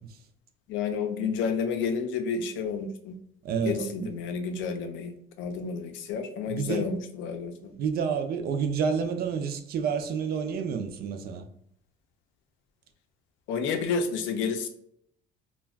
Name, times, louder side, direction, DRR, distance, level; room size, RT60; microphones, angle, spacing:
voice 1, 0.7-3.2 3.7-7.7 13.5-14.7, left 5 dB, 65° left, 0.5 m, -30 dB
voice 2, 3.4-4.1 6.5-6.9 7.8-11.5, right 6 dB, 45° right, 0.4 m, -29 dB
2.3 x 2.2 x 3.3 m
cardioid pair, 125°, 21 cm